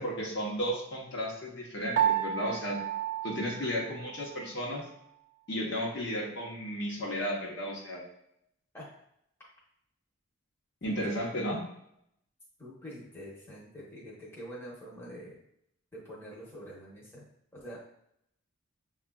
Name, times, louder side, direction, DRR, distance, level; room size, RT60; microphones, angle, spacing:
voice 1, 0.0-2.8 3.2-4.8 5.5-8.0 10.8-11.6, equal, 55° left, -2 dB, 0.8 m, -33 dB
Piano, 2.0-4.5, right 10 dB, 50° right, 0.3 m, -31 dB
voice 2, 12.6-15.4 15.9-17.2 17.5-17.8, equal, 10° left, -6 dB, 0.9 m, -45 dB
6.8 x 2.3 x 2.3 m, 0.75 s
head